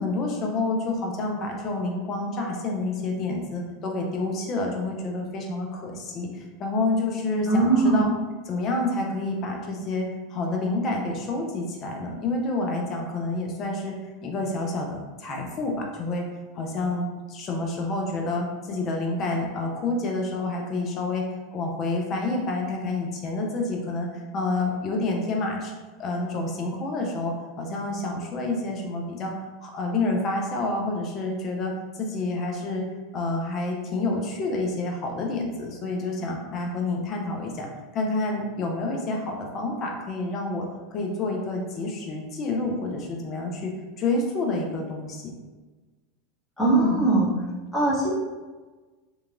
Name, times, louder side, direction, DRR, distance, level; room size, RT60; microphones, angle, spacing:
voice 1, 0.0-8.1 8.5-13.9 14.2-16.3 16.5-21.3 21.5-25.7 26.0-29.3 29.6-31.7 32.0-32.8 33.1-37.7 37.9-40.7 40.9-45.3 46.7-47.0, left 2 dB, 40° left, 1 dB, 0.5 m, -28 dB
voice 2, 7.5-8.0 46.6-47.2 47.7-48.1, right 2 dB, 5° left, -9 dB, 1.0 m, -20 dB
2.8 x 2.3 x 2.5 m, 1.3 s
hypercardioid pair, 95°, 0 cm